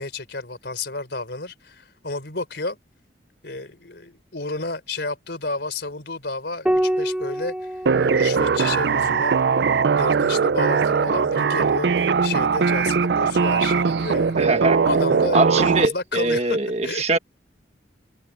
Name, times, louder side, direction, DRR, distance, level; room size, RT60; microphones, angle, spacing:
voice 1, 0.0-2.8 3.4-14.5 14.8-16.6 16.8-17.0, left 3 dB, 65° left, 4.1 m, -31 dB
Piano, 6.7-11.5 13.1-14.0, right 1 dB, 5° right, 1.3 m, -30 dB
sound 1, 7.9-15.9, right 5 dB, 65° right, 0.4 m, -20 dB
voice 2, 14.4-14.8 15.3-17.2, right 2 dB, 35° right, 1.6 m, -22 dB
head